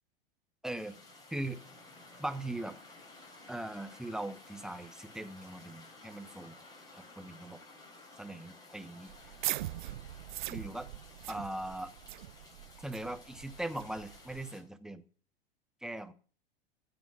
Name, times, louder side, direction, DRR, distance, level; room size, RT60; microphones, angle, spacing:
voice 1, 0.6-1.0 1.3-1.6 2.2-2.8 3.5-6.6 6.9-7.6 8.2-9.1 10.5-10.9 11.3-11.9 12.8-15.0 15.8-16.1, right 1 dB, ahead, 9 dB, 1.1 m, -40 dB
sound 1, 0.7-14.6, left 2 dB, 15° left, 4.4 m, -55 dB
sound 2, 9.1-14.5, right 15 dB, 55° right, 0.5 m, -41 dB
15.0 x 5.2 x 9.6 m, 0.41 s
figure-of-eight pair, 90°, 29 cm